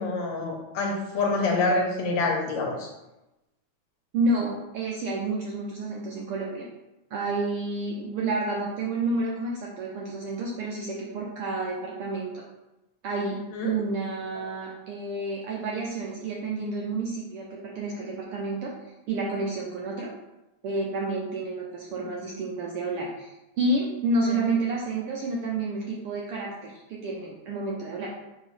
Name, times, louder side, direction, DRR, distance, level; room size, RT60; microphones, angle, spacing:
voice 1, 0.0-2.9 13.5-13.7 14.4-14.5 24.3-24.4, left 3 dB, 70° left, -1 dB, 2.3 m, -27 dB
voice 2, 4.1-6.7 7.1-12.4 13.0-17.5 17.7-18.7 19.1-20.1 20.6-28.1, right 2 dB, 75° right, -2 dB, 1.3 m, -30 dB
6.8 x 3.0 x 5.7 m, 0.97 s
omnidirectional pair, 3.5 m